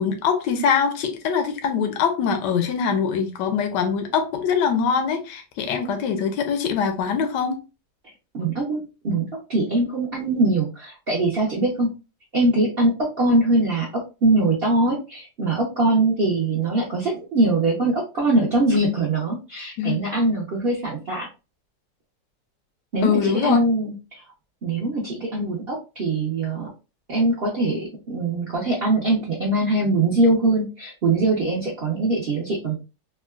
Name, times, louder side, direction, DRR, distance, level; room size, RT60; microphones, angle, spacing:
voice 1, 0.0-7.6 19.8-20.1 23.0-23.6, left 6 dB, 85° left, 1.2 m, -23 dB
voice 2, 8.3-11.9 12.3-13.9 14.2-21.3 22.9-24.2 24.6-26.7 27.1-32.8, right 2 dB, 55° right, 0.6 m, -22 dB
3.6 x 2.2 x 2.3 m
omnidirectional pair, 1.8 m